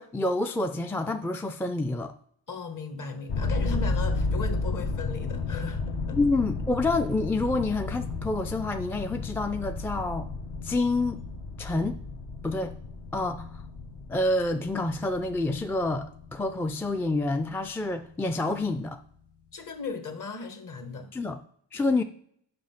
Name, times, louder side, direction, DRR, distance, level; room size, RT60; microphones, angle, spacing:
voice 1, 0.0-2.1 6.1-10.3 10.6-11.2 11.6-12.0 12.4-12.7 13.1-13.5 14.1-19.0 21.1-21.4 21.7-22.0, left 2 dB, 5° left, 0.3 m, -28 dB
voice 2, 2.5-6.2 19.5-21.1, left 4 dB, 45° left, 1.4 m, -37 dB
sound 1, 3.3-16.9, left 3 dB, 70° left, 1.4 m, -33 dB
7.5 x 5.5 x 5.8 m
cardioid pair, 115°, 43 cm